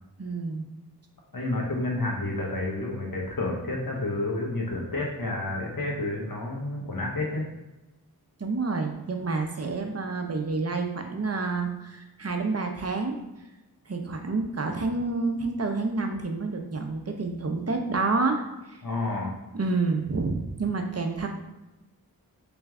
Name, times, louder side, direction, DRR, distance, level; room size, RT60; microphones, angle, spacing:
voice 1, 0.2-0.7 8.4-13.1 13.9-18.8 19.5-21.3, right 3 dB, 40° right, 4 dB, 0.6 m, -29 dB
voice 2, 1.3-7.4 18.8-19.3, left 2 dB, 65° left, -2 dB, 1.1 m, -30 dB
3.3 x 3.1 x 3.6 m, 1.0 s
wide cardioid pair, 45°, 38 cm